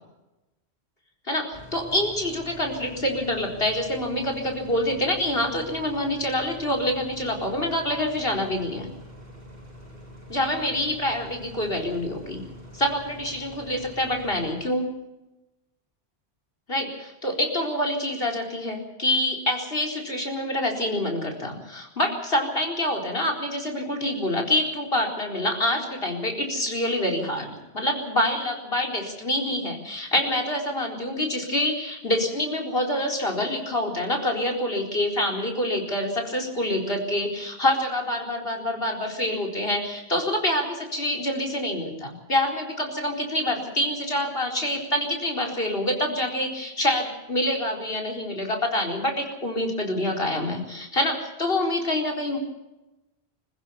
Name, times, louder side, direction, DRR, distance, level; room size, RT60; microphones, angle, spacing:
voice 1, 1.3-8.9 10.3-12.4 12.7-14.9 16.7-52.4, left 1 dB, 60° left, 1 dB, 4.6 m, -26 dB
sound 1, 1.5-14.6, equal, 55° right, 7.0 m, -45 dB
26.5 x 15.0 x 7.1 m, 1.0 s
omnidirectional pair, 1.1 m